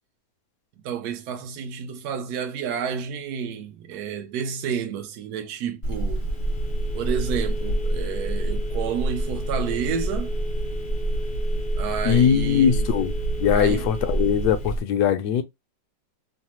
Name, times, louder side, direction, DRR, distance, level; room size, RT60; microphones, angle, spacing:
voice 1, 0.8-6.2 6.9-10.4 11.8-12.8 13.5-13.9, right 7 dB, 70° right, 1.0 m, -30 dB
Telephone, 5.8-14.8, right 1 dB, 45° left, 0.7 m, -27 dB
voice 2, 12.0-13.1 13.4-15.4, left 8 dB, 70° left, 1.0 m, -21 dB
3.2 x 2.0 x 2.9 m
omnidirectional pair, 2.0 m